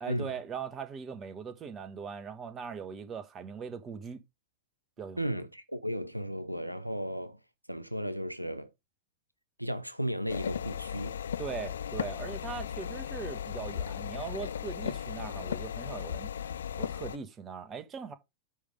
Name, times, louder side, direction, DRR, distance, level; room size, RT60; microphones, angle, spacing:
voice 1, 0.0-4.2 5.0-5.4 11.4-16.3 16.8-18.1, right 6 dB, 25° right, 1.3 m, -40 dB
voice 2, 5.2-7.4 7.7-8.7 9.6-11.1, equal, 90° right, 0.7 m, -35 dB
sound 1, 10.3-17.2, left 8 dB, 65° left, 0.4 m, -36 dB
10.0 x 3.6 x 5.1 m
figure-of-eight pair, 90°, 0 cm